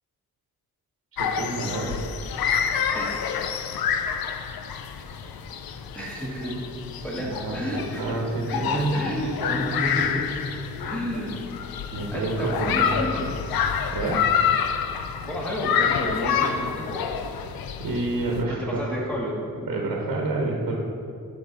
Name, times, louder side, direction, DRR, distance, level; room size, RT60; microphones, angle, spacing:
voice 1, 1.1-2.0 7.2-7.6 7.9-9.6 11.9-12.8 13.9-14.3 17.8-19.0 19.7-20.7, right 2 dB, 70° right, -1 dB, 1.2 m, -28 dB
sound 1, 1.2-18.4, left 7 dB, 80° left, 0.6 m, -28 dB
voice 2, 2.9-3.2 5.9-6.6 7.0-10.3 10.8-11.4 12.1-13.3 15.2-17.1 18.5-19.4, equal, 5° left, -4 dB, 1.5 m, -31 dB
11.0 x 5.8 x 3.9 m, 2.4 s
wide cardioid pair, 155°, 36 cm